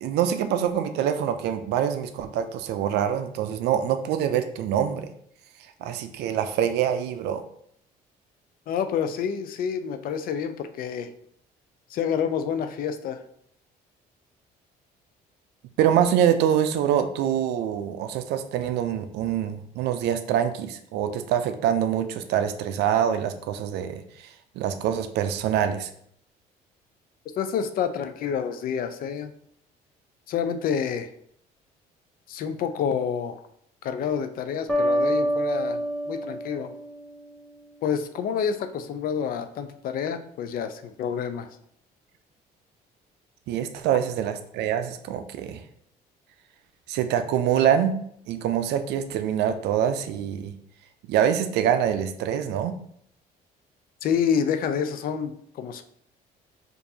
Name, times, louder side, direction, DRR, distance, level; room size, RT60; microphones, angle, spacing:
voice 1, 0.0-5.1 5.8-7.4 15.8-24.0 24.6-25.9 43.5-45.6 46.9-48.0 48.3-50.5 51.1-52.7, right 9 dB, 80° right, 9 dB, 0.4 m, -25 dB
voice 2, 8.7-11.1 11.9-13.2 27.4-29.3 30.3-31.1 32.3-33.4 33.8-36.7 37.8-41.5 54.0-55.8, left 7 dB, 60° left, 9 dB, 0.4 m, -28 dB
sound 1, 34.7-37.5, equal, ahead, 0.6 m, -27 dB
4.6 x 2.6 x 2.7 m, 0.67 s
cardioid pair, 110°, 17 cm